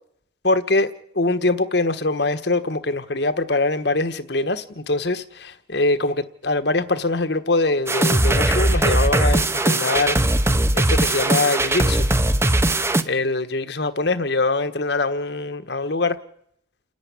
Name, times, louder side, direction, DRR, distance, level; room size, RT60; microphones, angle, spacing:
voice 1, 0.4-10.2 10.7-12.1 13.1-16.2, left 2 dB, 60° left, 1.3 m, -23 dB
sound 1, 7.9-13.0, right 1 dB, 15° right, 0.9 m, -19 dB
29.0 x 11.0 x 9.8 m
head